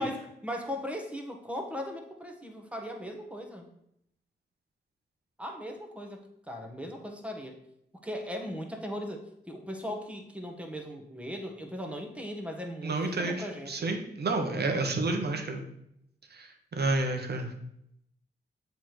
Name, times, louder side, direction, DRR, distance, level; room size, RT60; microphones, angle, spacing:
voice 1, 0.0-3.7 5.4-7.6 8.0-14.0, equal, 5° right, 3 dB, 1.4 m, -38 dB
voice 2, 12.8-15.6 16.3-17.5, right 2 dB, 55° right, 4 dB, 1.2 m, -30 dB
7.5 x 3.5 x 4.6 m, 0.76 s
supercardioid pair, 45°, 20 cm